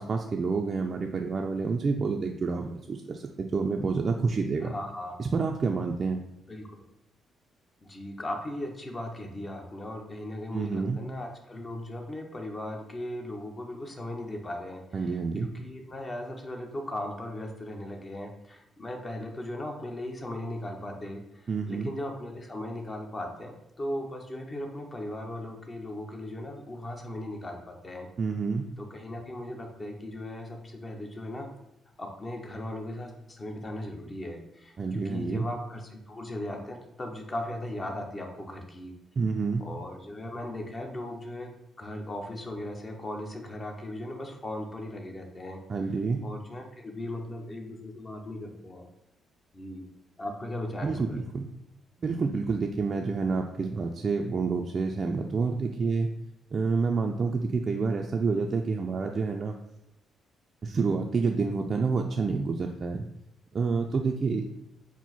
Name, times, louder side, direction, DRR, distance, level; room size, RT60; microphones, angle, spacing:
voice 1, 0.0-4.7 5.2-6.2 10.5-11.0 14.9-15.5 21.5-21.9 28.2-28.7 34.8-35.5 39.2-39.7 45.7-46.2 50.8-51.5 52.0-56.1 56.5-59.6 60.6-63.1 63.5-64.5, right 4 dB, 40° right, 2 dB, 0.3 m, -28 dB
voice 2, 4.6-5.2 6.5-6.8 7.8-28.1 28.8-31.5 32.0-38.9 39.6-45.6 46.2-48.9 49.5-49.9 50.2-51.2, left 1 dB, 30° left, 2 dB, 0.7 m, -38 dB
4.4 x 2.0 x 4.0 m, 0.84 s
cardioid pair, 90°, 0 cm